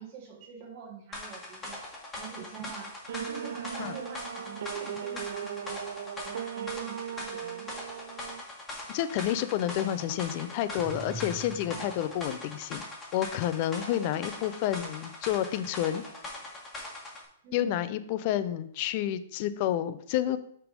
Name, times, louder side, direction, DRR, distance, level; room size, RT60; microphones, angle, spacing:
voice 1, 0.0-1.8 2.2-5.9 6.2-7.7 11.7-12.0 17.4-17.7, right 7 dB, 40° right, -2 dB, 2.0 m, -46 dB
sound 1, 1.1-17.2, left 2 dB, 10° left, 1.3 m, -41 dB
sound 2, 3.1-8.4, right 9 dB, 70° right, 0.4 m, -38 dB
voice 2, 8.9-12.8 13.1-16.0 17.5-20.4, left 11 dB, 40° left, 13 dB, 0.3 m, -30 dB
sound 3, 10.7-12.2, right 3 dB, 10° right, 0.6 m, -42 dB
5.9 x 3.4 x 5.2 m, 0.69 s
hypercardioid pair, 160°, 0 cm